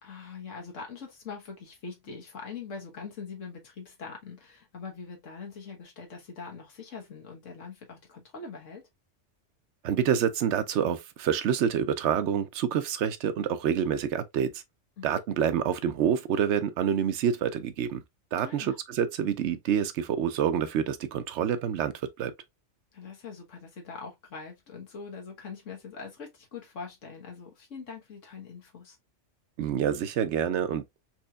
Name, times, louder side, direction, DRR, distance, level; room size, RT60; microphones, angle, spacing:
voice 1, 0.0-8.8 15.0-15.1 18.4-18.8 22.9-29.0, left 5 dB, 80° left, 1.5 m, -43 dB
voice 2, 9.8-14.6 15.0-18.0 18.3-22.3 29.6-30.8, right 8 dB, 70° right, 0.8 m, -27 dB
4.3 x 3.0 x 2.3 m
omnidirectional pair, 1.3 m